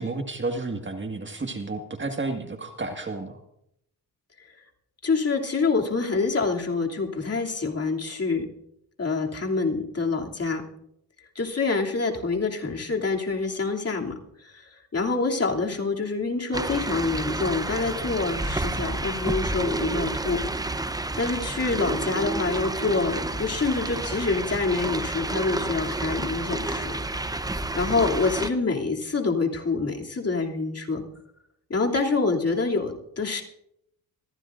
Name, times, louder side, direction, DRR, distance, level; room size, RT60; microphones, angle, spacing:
voice 1, 0.0-3.4, right 3 dB, 25° right, 5 dB, 1.8 m, -31 dB
voice 2, 5.0-8.5 9.0-10.6 11.3-14.1 14.4-20.4 21.2-27.3 27.7-31.0 31.7-33.4, left 4 dB, 35° left, 0 dB, 2.9 m, -26 dB
sound 1, 16.5-28.5, right 2 dB, 10° right, 0.8 m, -30 dB
23.0 x 15.0 x 2.6 m, 0.76 s
supercardioid pair, 60°, 44 cm